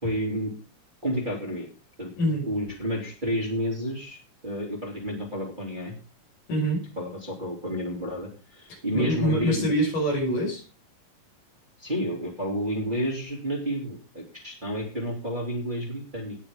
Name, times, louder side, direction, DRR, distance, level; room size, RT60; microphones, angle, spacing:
voice 1, 0.0-0.5 1.0-1.7 2.0-2.1 2.5-6.0 7.0-9.7 11.8-16.4, equal, 15° right, -3 dB, 3.0 m, -30 dB
voice 2, 2.2-2.5 6.5-6.8 8.9-10.6, equal, 75° left, -1 dB, 7.6 m, -25 dB
19.0 x 6.7 x 3.8 m, 0.37 s
omnidirectional pair, 3.8 m